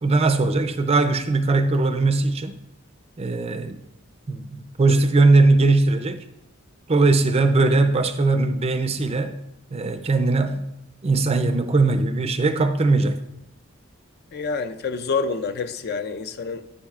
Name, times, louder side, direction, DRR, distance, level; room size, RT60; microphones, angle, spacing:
voice 1, 0.0-2.5 3.2-3.8 4.3-6.2 6.9-9.4 9.7-10.6 11.0-13.2, right 3 dB, 30° right, 0.4 m, -20 dB
voice 2, 14.3-16.8, left 4 dB, 45° left, 0.4 m, -27 dB
9.7 x 8.5 x 2.4 m
head